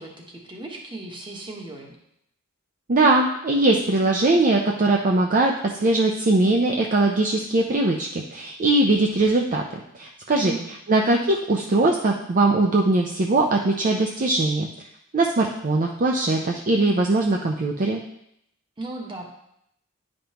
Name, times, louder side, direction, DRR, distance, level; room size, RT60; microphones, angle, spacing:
voice 1, 0.0-1.9 10.3-10.7 18.8-19.2, right 2 dB, 25° right, 0 dB, 1.3 m, -36 dB
voice 2, 2.9-9.6 9.9-10.5 10.9-14.7 15.1-18.0, right 2 dB, 40° right, 1 dB, 0.5 m, -21 dB
10.0 x 5.3 x 2.9 m, 0.77 s
head